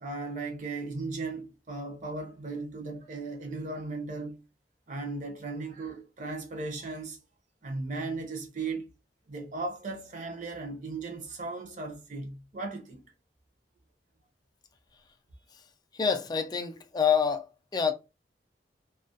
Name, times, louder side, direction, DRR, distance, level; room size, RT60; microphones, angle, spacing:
voice 1, 0.0-4.4 4.9-7.2 7.6-8.9 9.3-13.0, right 3 dB, 45° right, 0.6 m, -36 dB
voice 2, 15.9-17.9, left 6 dB, 25° left, 0.3 m, -27 dB
2.3 x 2.1 x 2.6 m
head